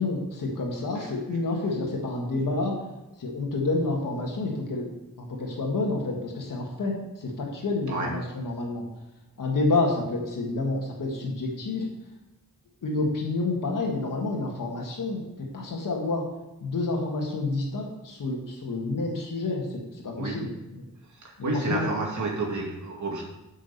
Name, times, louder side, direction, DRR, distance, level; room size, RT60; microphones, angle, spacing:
voice 1, 0.0-2.8 3.2-4.9 5.2-8.8 9.4-11.9 12.8-16.3 16.6-20.5 21.4-21.9, left 2 dB, 85° left, -1 dB, 2.0 m, -29 dB
voice 2, 21.1-23.2, right 3 dB, 65° right, -1 dB, 2.3 m, -30 dB
8.6 x 6.2 x 6.7 m, 0.99 s
wide cardioid pair, 120°, 31 cm